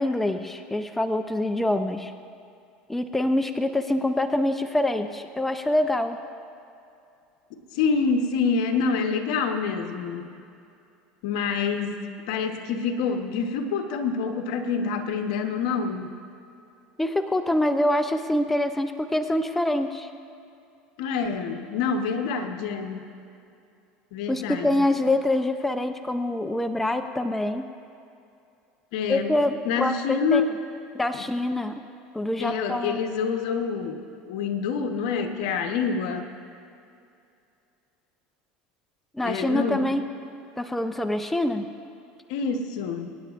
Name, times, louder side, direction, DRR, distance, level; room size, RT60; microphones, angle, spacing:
voice 1, 0.0-2.1 2.9-6.2 17.0-20.1 24.3-27.7 29.1-30.4 30.9-31.7 32.1-33.1 39.1-40.0 40.6-41.7, left 1 dB, 5° left, 7 dB, 0.5 m, -25 dB
voice 2, 7.5-10.3 11.2-16.2 21.0-23.1 24.1-24.8 28.9-29.3 29.6-30.5 32.4-36.3 39.2-39.8 42.3-43.1, left 5 dB, 75° left, 5 dB, 1.1 m, -27 dB
24.0 x 9.8 x 2.5 m, 2.6 s
supercardioid pair, 115°, 4 cm